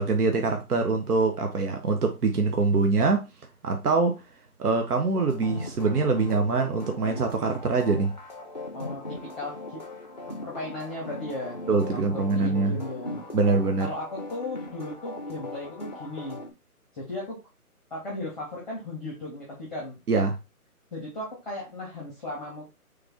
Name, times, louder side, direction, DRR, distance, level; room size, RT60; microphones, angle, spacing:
voice 1, 0.0-3.2 3.6-4.2 4.6-8.1 11.7-12.8 13.3-13.9 20.1-20.4, right 3 dB, 85° right, 0.9 m, -24 dB
sound 1, 5.1-16.5, left 2 dB, 35° left, 0.4 m, -39 dB
voice 2, 8.7-9.8 10.3-11.6 11.9-13.2 13.8-16.4 16.9-17.4 17.9-20.0 20.9-22.7, left 2 dB, ahead, 0.7 m, -36 dB
3.3 x 3.2 x 3.5 m
hypercardioid pair, 150°, 44 cm